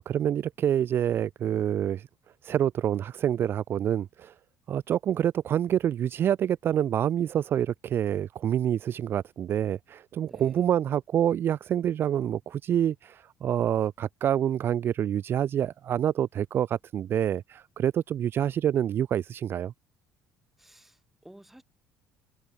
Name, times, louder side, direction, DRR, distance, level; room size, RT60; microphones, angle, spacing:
voice 1, 0.0-2.1 2.4-4.3 4.7-19.7, right 10 dB, 40° right, 0.5 m, -27 dB
voice 2, 10.2-10.6 20.6-21.6, right 1 dB, 5° right, 6.6 m, -53 dB
cardioid pair, 140°, 6 cm